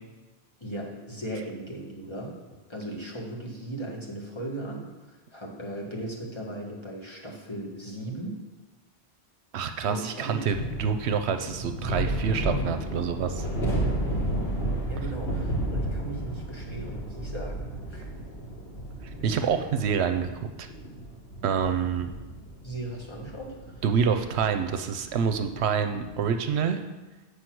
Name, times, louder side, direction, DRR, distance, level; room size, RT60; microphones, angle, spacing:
voice 1, 0.6-2.4 2.7-8.4 9.9-10.4 14.9-18.1 19.2-19.7 22.6-23.8, right 1 dB, 25° left, -3 dB, 1.6 m, -37 dB
voice 2, 9.5-13.5 19.2-20.7 21.4-22.1 23.8-26.8, right 7 dB, 80° right, 8 dB, 0.9 m, -27 dB
sound 1, 10.5-26.3, right 1 dB, 70° left, 3.0 m, -33 dB
7.9 x 5.3 x 6.1 m, 1.2 s
omnidirectional pair, 1.1 m